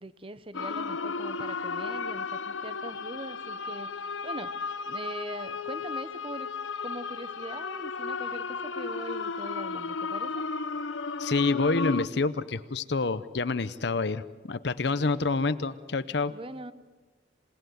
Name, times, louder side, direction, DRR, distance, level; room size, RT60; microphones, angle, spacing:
voice 1, 0.0-4.5 4.9-6.5 6.8-10.4 16.3-16.7, right 2 dB, 30° right, 14 dB, 0.9 m, -41 dB
sound 1, 0.5-12.1, left 4 dB, 90° left, 0.9 m, -34 dB
voice 2, 11.2-16.3, left 3 dB, 60° left, 13 dB, 0.7 m, -28 dB
27.5 x 18.5 x 9.3 m, 1.3 s
head